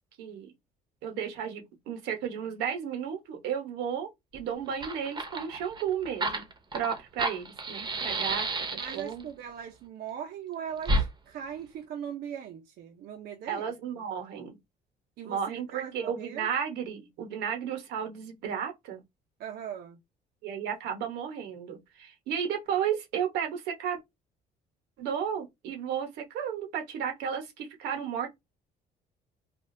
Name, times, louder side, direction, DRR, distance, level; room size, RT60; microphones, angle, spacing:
voice 1, 0.2-0.5 1.0-6.4 6.7-9.2 13.5-14.6 15.2-19.0 20.4-24.0 25.0-28.3, right 8 dB, 90° right, 1.1 m, -33 dB
Fire, 4.3-4.4 4.7-9.2 10.8-11.1, right 2 dB, 25° right, 0.8 m, -31 dB
voice 2, 8.7-13.7 15.2-16.5 19.4-20.0, right 8 dB, 70° right, 0.7 m, -40 dB
3.4 x 2.4 x 2.6 m
cardioid pair, 110°, 17 cm